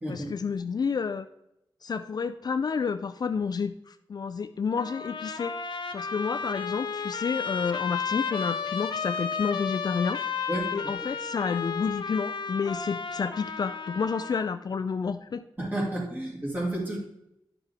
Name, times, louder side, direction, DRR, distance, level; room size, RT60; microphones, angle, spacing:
voice 1, 0.1-1.3 1.8-10.2 10.7-15.4, left 5 dB, 50° left, 9 dB, 0.4 m, -30 dB
Trumpet, 4.8-14.5, left 6 dB, 70° left, 0.8 m, -33 dB
voice 2, 15.6-17.0, right 1 dB, 20° right, -3 dB, 2.5 m, -31 dB
10.5 x 5.8 x 3.5 m, 0.83 s
wide cardioid pair, 120°, 9 cm